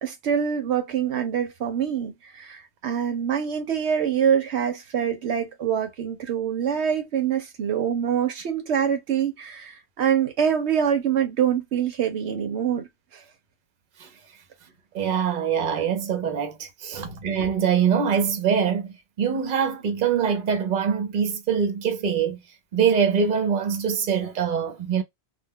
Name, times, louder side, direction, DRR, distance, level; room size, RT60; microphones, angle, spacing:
voice 1, 0.0-13.2, right 8 dB, 75° right, 0.9 m, -25 dB
voice 2, 14.9-18.9 19.2-22.4 22.7-25.0, right 7 dB, 50° right, 0.8 m, -23 dB
2.3 x 2.2 x 3.4 m
omnidirectional pair, 1.2 m